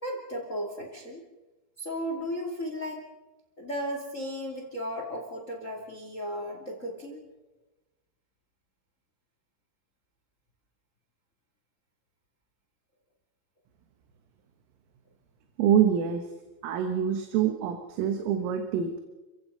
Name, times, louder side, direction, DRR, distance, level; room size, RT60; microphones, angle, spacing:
voice 1, 0.0-1.2 1.8-3.0 3.6-7.2, equal, 40° left, 3 dB, 1.0 m, -35 dB
voice 2, 15.6-16.3 16.6-19.0, right 8 dB, 80° right, 6 dB, 4.0 m, -25 dB
29.5 x 16.0 x 5.6 m, 1.1 s
omnidirectional pair, 5.9 m